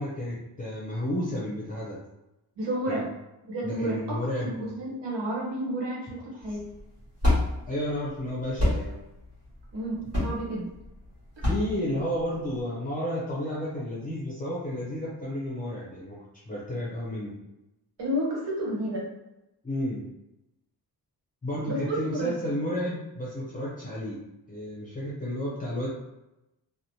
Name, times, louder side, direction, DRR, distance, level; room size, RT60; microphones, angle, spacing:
voice 1, 0.0-2.0 2.9-3.0 3.6-4.7 7.7-9.0 11.4-16.2 16.5-17.3 19.6-20.0 21.4-24.2 24.5-25.9, equal, 20° left, -7 dB, 0.5 m, -32 dB
voice 2, 2.6-3.1 3.5-6.6 9.7-10.7 18.0-19.0 21.6-22.3, right 1 dB, 80° right, -4 dB, 1.1 m, -31 dB
sound 1, 6.4-12.6, left 1 dB, 35° right, 1.4 m, -28 dB
2.9 x 2.1 x 2.6 m, 0.94 s
wide cardioid pair, 170°, 42 cm